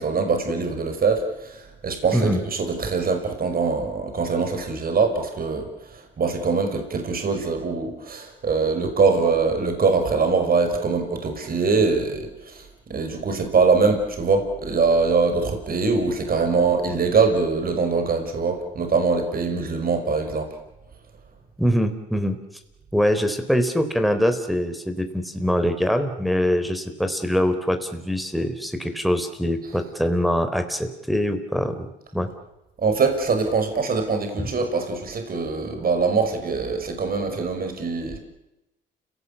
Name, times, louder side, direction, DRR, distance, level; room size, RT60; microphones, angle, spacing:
voice 1, 0.0-20.5 32.8-38.2, right 4 dB, 50° right, 6 dB, 5.9 m, -23 dB
voice 2, 21.6-22.4 22.9-31.9 32.1-32.3 34.4-34.5, equal, ahead, 7 dB, 3.9 m, -23 dB
30.0 x 18.5 x 8.5 m, 0.92 s
cardioid pair, 90°, 20 cm